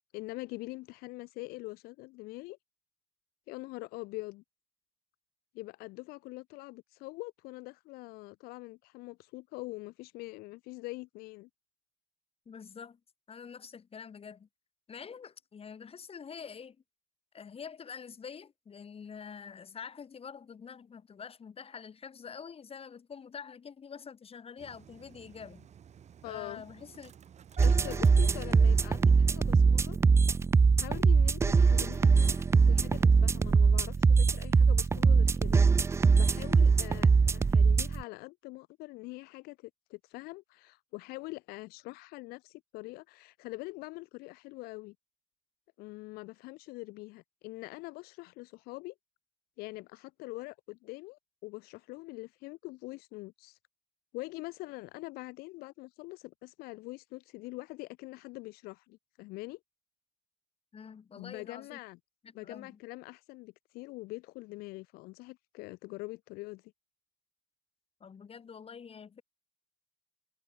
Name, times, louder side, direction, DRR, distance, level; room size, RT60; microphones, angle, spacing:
voice 1, 0.1-2.6 3.5-4.4 5.5-11.5 26.2-26.6 27.6-30.0 30.8-35.6 35.9-44.9 45.8-48.9 49.6-53.6 54.1-59.6 61.2-62.0 62.3-66.7, left 22 dB, 70° left, 0.9 m, -44 dB
voice 2, 12.5-13.0 13.3-14.5 14.9-16.8 17.3-25.7 26.3-27.1 27.7-28.0 60.7-61.8 62.4-62.8 68.0-69.2, left 6 dB, 35° left, 4.0 m, -46 dB
Engine starting, 24.6-29.1 29.4-29.5 29.8-30.0, right 8 dB, 45° right, 2.0 m, -52 dB
sound 1, 27.6-38.0, right 5 dB, 15° right, 0.3 m, -23 dB
supercardioid pair, 75°, 16 cm